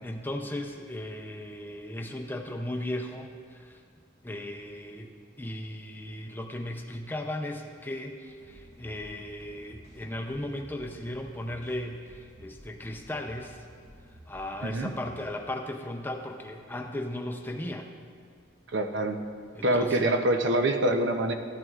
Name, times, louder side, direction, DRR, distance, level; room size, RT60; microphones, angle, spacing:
voice 1, 0.0-3.8 4.2-13.6 14.3-17.9 19.5-20.1, left 1 dB, 10° left, 2 dB, 0.5 m, -36 dB
sound 1, 8.3-15.2, equal, 85° right, 2.8 m, -53 dB
voice 2, 14.6-14.9 18.7-19.2 19.6-21.3, right 1 dB, 65° right, 6 dB, 0.7 m, -25 dB
14.0 x 11.0 x 2.4 m, 2.1 s
head